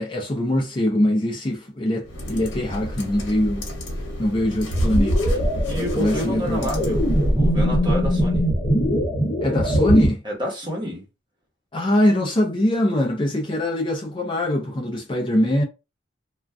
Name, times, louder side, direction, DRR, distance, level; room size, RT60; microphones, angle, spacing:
voice 1, 0.0-3.7 4.2-5.4 5.9-7.0 9.4-10.2 11.7-15.6, left 1 dB, 25° left, 0.5 m, -22 dB
sound 1, 2.0-7.4, equal, 80° left, 1.0 m, -33 dB
sound 2, 4.7-10.1, equal, 45° left, 0.9 m, -21 dB
voice 2, 5.7-8.4 10.2-11.1, left 1 dB, 25° right, 1.0 m, -29 dB
2.4 x 2.2 x 3.4 m
head